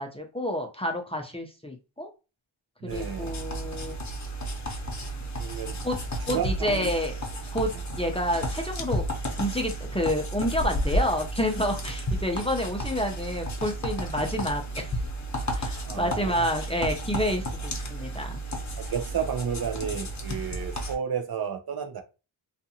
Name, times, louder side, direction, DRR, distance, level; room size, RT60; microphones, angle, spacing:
voice 1, 0.0-2.1 2.8-4.0 5.8-6.0 6.3-7.2 7.5-7.7 7.9-9.0 9.4-15.0 15.5-18.3, equal, 10° left, 0.5 m, -29 dB
voice 2, 2.8-3.4 5.4-5.8 6.3-6.9 15.8-16.5 18.8-22.0, right 7 dB, 50° right, 0.5 m, -32 dB
sound 1, 2.9-20.9, right 1 dB, 35° left, 0.8 m, -32 dB
2.5 x 2.4 x 2.7 m
cardioid pair, 70°, 49 cm